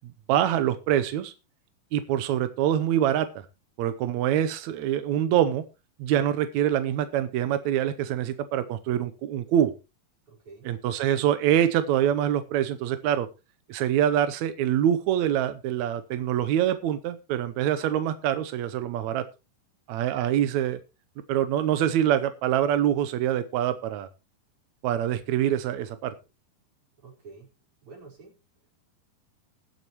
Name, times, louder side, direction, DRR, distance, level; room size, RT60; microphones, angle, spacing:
voice 1, 0.0-1.3 1.9-3.5 3.8-5.6 6.0-9.7 10.6-13.3 13.7-19.2 19.9-20.8 21.3-24.1 24.8-26.1, right 11 dB, 80° right, 11 dB, 1.7 m, -25 dB
voice 2, 10.3-10.7 27.0-27.5 27.8-28.3, right 4 dB, 35° right, -2 dB, 5.3 m, -48 dB
21.5 x 7.8 x 3.0 m, 0.27 s
omnidirectional pair, 4.3 m